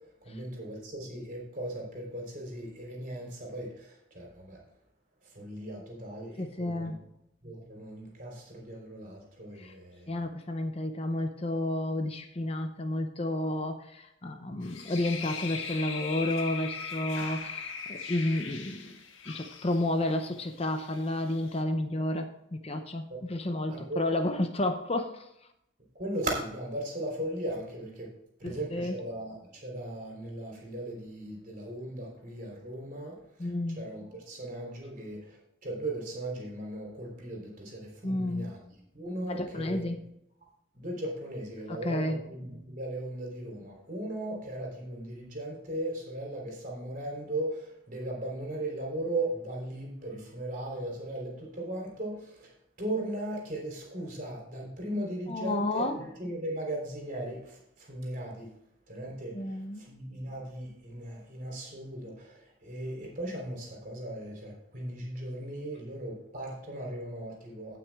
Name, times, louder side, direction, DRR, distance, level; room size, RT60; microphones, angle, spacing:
voice 1, 0.2-4.6 5.2-6.9 7.4-10.3 23.1-23.2 23.7-24.0 25.9-28.1 28.4-38.6 38.9-39.8 40.7-58.5 58.9-67.8, right 1 dB, 45° right, -1 dB, 3.4 m, -37 dB
voice 2, 6.4-7.0 9.6-9.7 10.1-18.9 19.3-25.3 28.7-29.0 33.4-33.8 38.0-38.6 39.2-40.0 41.7-42.2 55.3-56.0 59.3-59.8, left 1 dB, 30° left, 6 dB, 0.7 m, -31 dB
sound 1, 14.6-21.6, left 6 dB, 85° left, 1.5 m, -40 dB
16.5 x 6.0 x 3.5 m, 0.79 s
head